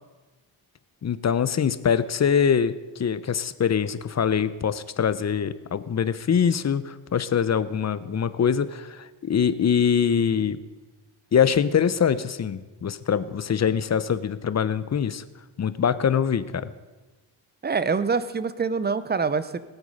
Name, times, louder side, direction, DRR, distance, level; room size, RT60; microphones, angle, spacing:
voice 1, 1.0-10.6 11.3-15.2 15.6-16.7, left 7 dB, 35° left, 15 dB, 0.6 m, -23 dB
voice 2, 17.6-19.6, right 5 dB, 20° right, 14 dB, 0.6 m, -25 dB
18.0 x 8.1 x 5.4 m, 1.2 s
cardioid pair, 105°, 48 cm